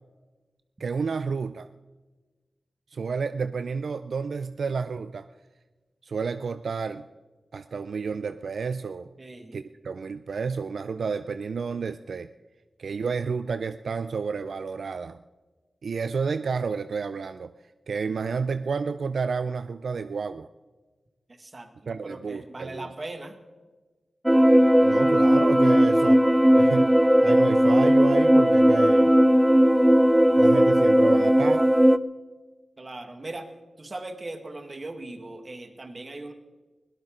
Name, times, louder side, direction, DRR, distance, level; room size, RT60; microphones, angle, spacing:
voice 1, 0.8-1.7 2.9-5.3 6.0-7.1 7.5-9.1 9.5-12.3 12.8-15.2 15.8-17.5 17.9-20.5 21.9-22.9 24.8-26.2 26.5-27.0 27.2-29.1 30.4-31.7, right 5 dB, 80° right, 11 dB, 0.4 m, -30 dB
voice 2, 9.2-9.6 21.4-23.4 32.8-33.5 33.8-36.3, right 2 dB, 40° right, 6 dB, 1.7 m, -39 dB
sound 1, 24.3-32.0, equal, 5° right, 0.5 m, -18 dB
21.0 x 17.0 x 3.8 m, 1.3 s
wide cardioid pair, 75°, 0 cm